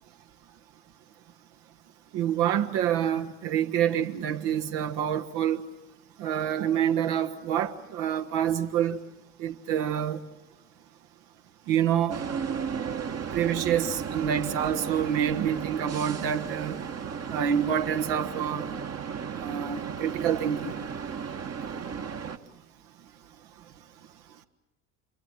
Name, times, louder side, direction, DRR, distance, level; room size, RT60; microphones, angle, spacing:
voice 1, 2.1-5.7 6.2-9.0 9.4-10.2 11.7-12.2 13.3-16.8 17.3-18.7 19.4-20.7, right 9 dB, 60° right, 1.6 m, -27 dB
sound 1, 12.1-22.4, right 6 dB, 35° right, 1.5 m, -34 dB
27.0 x 23.0 x 7.7 m
figure-of-eight pair, 55°, 44 cm